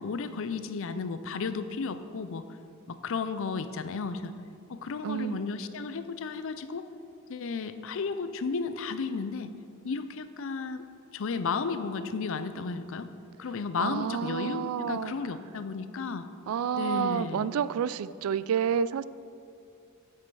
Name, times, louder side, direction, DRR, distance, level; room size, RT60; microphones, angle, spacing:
voice 1, 0.0-2.5 2.9-4.3 4.7-6.9 7.3-9.5 9.8-10.9 11.1-13.1 13.4-16.3 16.8-17.5, left 4 dB, 65° left, 12 dB, 0.5 m, -33 dB
voice 2, 5.0-5.4 13.8-15.1 16.5-19.0, right 8 dB, 75° right, 16 dB, 0.3 m, -29 dB
9.9 x 7.6 x 4.7 m, 2.5 s
head